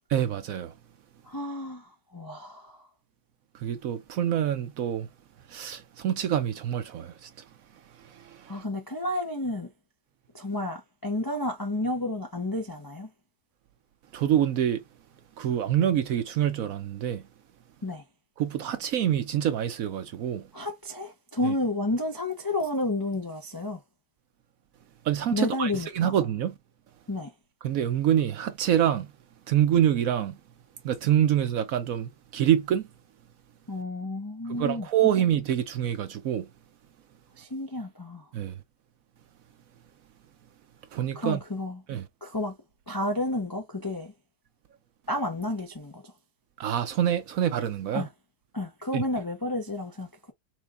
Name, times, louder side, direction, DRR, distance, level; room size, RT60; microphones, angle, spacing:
voice 1, 0.1-0.7 3.6-5.1 5.5-7.3 14.1-14.8 15.4-17.2 18.4-20.5 21.4-21.5 25.1-26.5 27.6-29.1 29.5-30.3 30.8-32.8 34.5-36.5 38.3-38.5 40.9-41.4 41.9-42.0 46.6-48.1 48.9-49.0, right 10 dB, 65° right, 0.9 m, -26 dB
voice 2, 1.3-2.8 8.5-9.7 10.3-13.1 17.8-18.0 20.5-23.8 25.3-26.2 27.1-27.3 33.7-35.1 37.4-38.2 41.1-41.8 42.2-42.5 42.9-44.1 45.1-46.1 47.9-48.1 48.5-50.1, left 1 dB, 35° left, 0.3 m, -31 dB
4.5 x 3.8 x 2.5 m
omnidirectional pair, 1.8 m